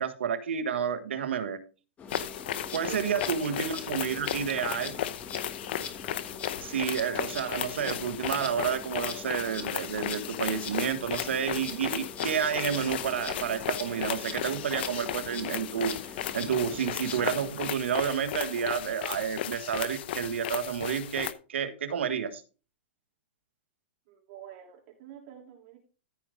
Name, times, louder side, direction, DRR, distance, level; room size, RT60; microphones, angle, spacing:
voice 1, 0.0-1.6 2.7-4.9 6.6-15.9 16.3-22.4, right 7 dB, 85° right, 10 dB, 1.4 m, -30 dB
Insect, 2.0-17.5, left 5 dB, 20° left, 1.4 m, -43 dB
sound 1, 2.1-21.3, left 11 dB, 65° left, 0.8 m, -35 dB
voice 2, 24.1-25.8, right 10 dB, 50° right, -1 dB, 3.4 m, -47 dB
14.0 x 4.9 x 3.8 m, 0.34 s
hypercardioid pair, 140°, 6 cm